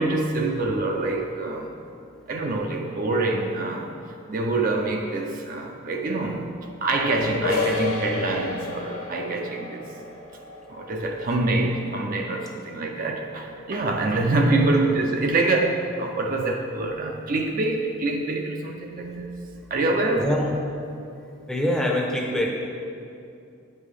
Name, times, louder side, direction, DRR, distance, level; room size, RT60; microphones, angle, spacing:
voice 1, 0.0-1.7 2.3-3.9 4.3-6.5 6.8-9.8 10.7-19.4 19.7-20.4, right 2 dB, 40° right, 3 dB, 0.4 m, -25 dB
sound 1, 7.4-12.9, left 3 dB, 80° left, 0.8 m, -32 dB
voice 2, 20.2-20.5 21.5-22.5, left 1 dB, 5° left, -1 dB, 0.6 m, -24 dB
8.5 x 5.4 x 3.3 m, 2.5 s
head